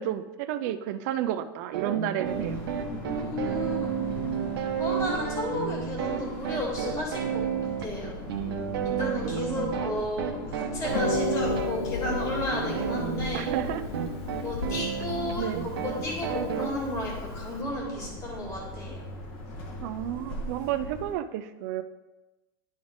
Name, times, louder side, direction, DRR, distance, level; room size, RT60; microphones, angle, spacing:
voice 1, 0.0-2.6 9.5-9.7 13.3-13.8 15.4-15.6 19.8-21.8, right 11 dB, 45° right, 10 dB, 0.4 m, -31 dB
sound 1, 1.7-16.7, right 8 dB, 75° right, 0.9 m, -31 dB
sound 2, 2.2-21.1, left 1 dB, 40° left, 1.3 m, -40 dB
voice 2, 3.0-3.9 4.8-7.4 7.8-8.1 8.8-13.5 14.3-18.9, left 1 dB, 25° left, -3 dB, 2.0 m, -33 dB
Harp, 10.9-17.6, left 6 dB, 80° left, 0.7 m, -35 dB
11.0 x 3.9 x 3.6 m, 1.1 s
supercardioid pair, 165°, 13 cm